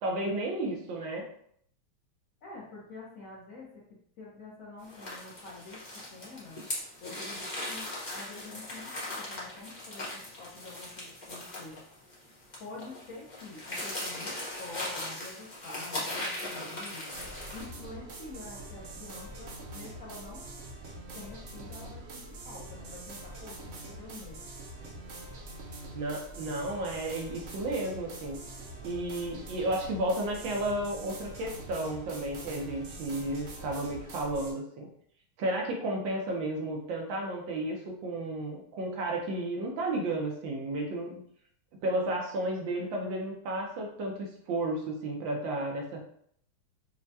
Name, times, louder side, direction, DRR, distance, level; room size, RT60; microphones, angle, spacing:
voice 1, 0.0-1.3 25.9-28.4 28.8-34.9 35.4-41.2 41.8-46.0, right 1 dB, 70° right, 0 dB, 1.4 m, -33 dB
voice 2, 2.4-6.6 7.0-11.9 12.6-17.2 17.5-20.5 21.1-24.4, left 3 dB, 80° left, -4 dB, 0.7 m, -47 dB
sound 1, 4.9-17.7, left 1 dB, 35° left, 0.7 m, -39 dB
sound 2, 17.1-34.5, right 2 dB, 90° right, 0.7 m, -44 dB
5.7 x 2.1 x 2.7 m, 0.65 s
omnidirectional pair, 2.3 m